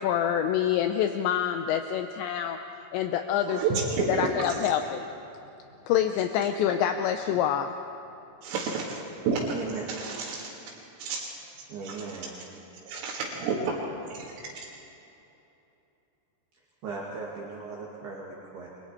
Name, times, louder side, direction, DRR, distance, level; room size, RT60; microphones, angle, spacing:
voice 1, 0.0-2.6 2.9-3.6 4.1-5.1 5.9-7.8, left 9 dB, 85° left, 7 dB, 2.5 m, -26 dB
voice 2, 3.5-4.3 8.4-9.0 9.2-9.6 9.9-10.5 11.0-11.3 11.8-12.0 12.9-13.7 14.1-14.7, right 5 dB, 80° right, -6 dB, 4.8 m, -30 dB
voice 3, 9.5-9.8 11.7-12.3 16.8-18.7, right 4 dB, 60° right, -4 dB, 3.6 m, -38 dB
30.0 x 24.5 x 4.4 m, 2.9 s
omnidirectional pair, 6.0 m